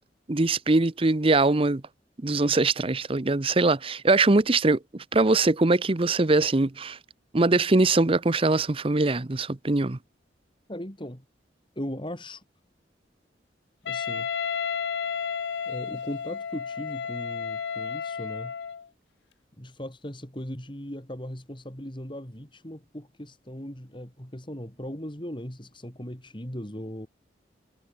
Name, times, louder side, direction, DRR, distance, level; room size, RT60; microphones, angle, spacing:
voice 1, 0.3-1.8 2.2-7.0 7.3-10.0, right 3 dB, 30° right, 0.7 m, -22 dB
voice 2, 10.7-11.2 11.8-12.4 13.8-14.3 15.7-18.5 19.6-27.1, equal, 25° left, 4.0 m, -38 dB
Wind instrument woodwind instrument, 13.9-18.9, left 7 dB, 70° left, 0.5 m, -32 dB
head